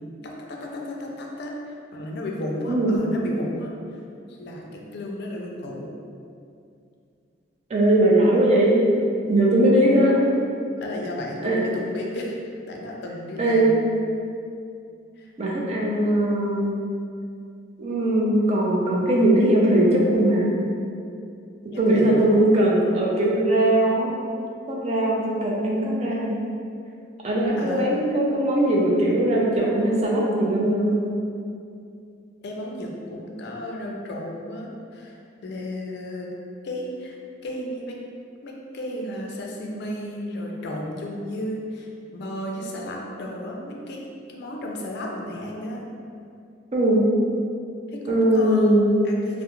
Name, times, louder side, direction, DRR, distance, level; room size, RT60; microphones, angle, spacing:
voice 1, 0.2-3.7 4.4-5.9 10.8-12.4 12.7-13.8 15.2-15.3 21.7-22.3 27.6-28.0 32.4-36.3 36.6-37.2 37.4-38.0 38.4-44.0 44.3-45.9 47.9-49.4, left 1 dB, 60° left, 0 dB, 0.4 m, -33 dB
voice 2, 7.7-8.8 9.3-10.2 11.4-11.7 13.4-13.7 15.4-16.7 17.8-20.5 21.8-24.2 24.7-26.4 27.2-31.2 46.7-47.1 48.1-48.9, right 1 dB, 35° right, -4 dB, 0.4 m, -20 dB
2.3 x 2.1 x 3.0 m, 2.4 s
head